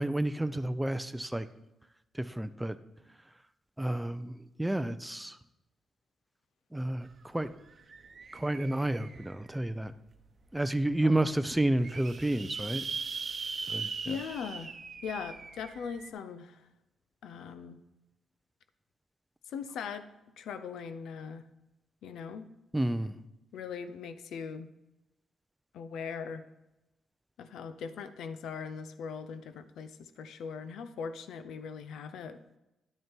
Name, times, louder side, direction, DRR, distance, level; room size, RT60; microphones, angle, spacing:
voice 1, 0.0-1.5 2.1-2.8 3.8-5.4 6.7-7.5 8.3-9.9 10.5-12.8 13.7-13.9 22.7-23.1, right 1 dB, 5° right, 11 dB, 0.5 m, -30 dB
sound 1, 7.0-7.1 7.4-9.5 10.1-10.2 10.6-10.7 10.9-11.0 11.5-16.1, right 5 dB, 45° right, 0.9 m, -40 dB
voice 2, 14.1-14.7 15.0-16.7 17.2-17.8 19.5-20.1 20.4-21.5 22.0-22.5 23.5-24.7 25.7-26.5 27.4-32.4, left 6 dB, 85° left, 11 dB, 0.5 m, -40 dB
10.5 x 6.4 x 4.5 m, 0.94 s
cardioid pair, 90°, 0 cm